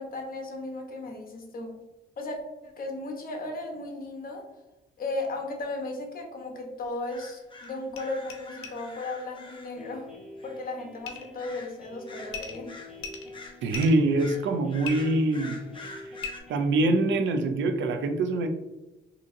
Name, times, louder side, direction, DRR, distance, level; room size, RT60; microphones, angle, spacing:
voice 1, 0.0-1.8 2.2-4.5 5.0-10.1 10.4-12.7, left 2 dB, 45° left, 2 dB, 1.0 m, -35 dB
sound 1, 6.8-6.9 7.6-7.7 7.9-8.0 8.3-8.4 8.6-8.7 11.1-11.3 12.3-12.6 13.0-14.0 14.8-14.9 16.2-16.3, left 6 dB, 90° left, 0.6 m, -37 dB
sound 2, 7.1-10.0 10.4-10.6 11.4-11.8 12.1-12.9 13.3-16.4, left 3 dB, 25° left, 0.7 m, -46 dB
sound 3, 9.8-17.1, left 1 dB, ahead, 1.0 m, -47 dB
voice 2, 13.6-15.6 16.5-18.5, right 2 dB, 70° right, 6 dB, 0.6 m, -24 dB
3.8 x 2.9 x 2.6 m, 1.0 s
cardioid pair, 90°, 20 cm